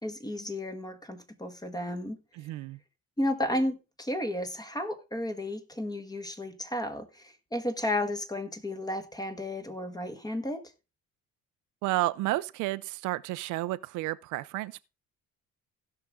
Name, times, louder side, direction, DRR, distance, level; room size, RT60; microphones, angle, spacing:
voice 1, 0.0-2.2 2.4-2.5 3.2-10.6, left 1 dB, 15° left, 1.6 m, -33 dB
voice 2, 2.4-2.8 11.8-14.8, right 17 dB, 90° right, 0.6 m, -31 dB
16.0 x 6.0 x 3.6 m
cardioid pair, 100°, 29 cm